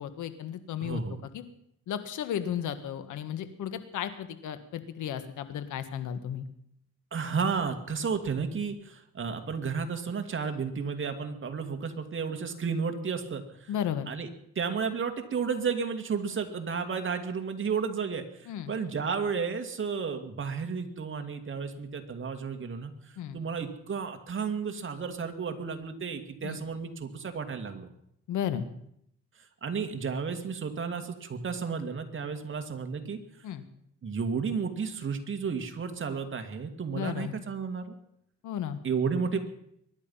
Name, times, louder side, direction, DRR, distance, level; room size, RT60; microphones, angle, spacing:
voice 1, 0.0-1.0 1.3-1.4 1.9-6.5 13.7-14.1 18.5-18.7 23.2-23.4 26.4-26.6 28.3-28.6 33.4-33.6 36.9-37.3 38.4-38.8, left 9 dB, 80° left, 11 dB, 1.6 m, -34 dB
voice 2, 0.8-1.2 7.1-13.7 14.1-14.3 14.6-27.9 29.4-33.2 34.0-38.0 38.8-39.5, right 5 dB, 40° right, 6 dB, 2.3 m, -32 dB
23.5 x 11.0 x 5.7 m, 0.73 s
cardioid pair, 90°, 30 cm